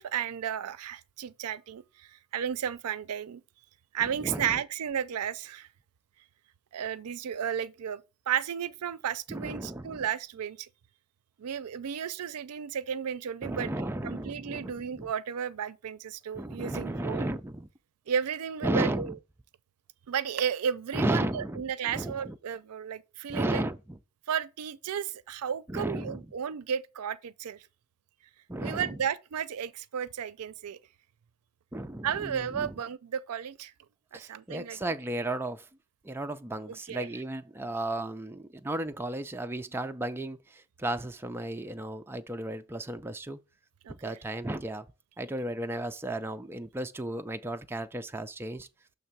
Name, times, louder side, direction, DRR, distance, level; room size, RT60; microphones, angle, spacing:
voice 1, 0.0-3.4 3.9-5.7 6.7-10.7 11.4-13.7 14.0-17.3 18.1-19.1 20.1-23.6 24.3-27.7 28.6-30.8 32.0-33.7 34.1-34.8 36.7-37.1 43.8-44.2, right 8 dB, 90° right, 0.4 m, -33 dB
voice 2, 4.2-4.6 9.3-10.1 13.4-15.1 16.4-17.7 18.6-19.1 20.9-22.3 23.3-24.0 25.7-26.2 28.5-29.0 31.7-32.7 34.1-35.7 36.0-43.4 43.9-44.9 45.2-48.7, right 1 dB, 10° right, 0.3 m, -34 dB
6.5 x 3.4 x 5.9 m
head